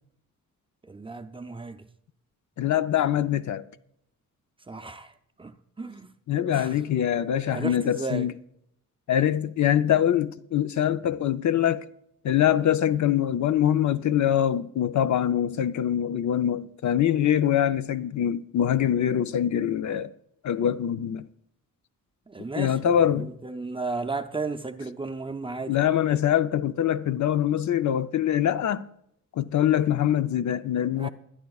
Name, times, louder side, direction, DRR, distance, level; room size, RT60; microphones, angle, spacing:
voice 1, 0.8-1.9 4.7-6.1 6.5-6.8 7.5-8.3 22.3-25.8 31.0-31.1, right 3 dB, 15° right, 0.5 m, -34 dB
voice 2, 2.6-3.6 6.3-8.3 9.1-11.8 12.2-20.1 20.4-21.2 22.6-23.3 25.7-28.9 29.4-31.1, left 10 dB, 60° left, 0.6 m, -24 dB
21.5 x 11.5 x 2.4 m
wide cardioid pair, 160°, 33 cm